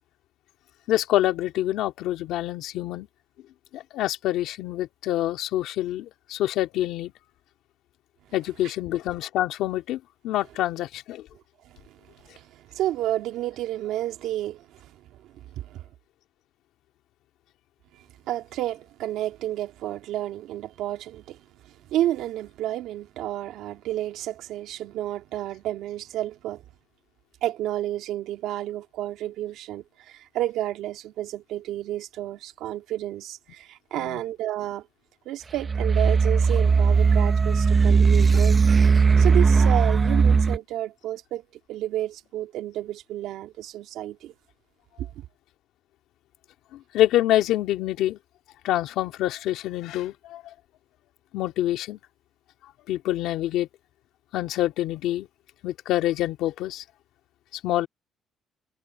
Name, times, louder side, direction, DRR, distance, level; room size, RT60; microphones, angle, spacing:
voice 1, 0.9-3.1 3.7-7.1 8.3-11.3 34.0-34.2 46.7-48.2 48.6-50.5 51.3-52.0 52.9-53.7 54.3-55.3 55.6-56.8 57.6-57.9, left 14 dB, 75° left, 2.8 m, -26 dB
voice 2, 11.6-15.8 17.9-26.6 27.4-34.9 35.3-38.8 39.0-41.4 41.7-44.3 45.0-45.3, right 13 dB, 75° right, 2.4 m, -31 dB
sound 1, 35.6-40.6, right 5 dB, 25° right, 0.9 m, -18 dB
cardioid pair, 150°, 0 cm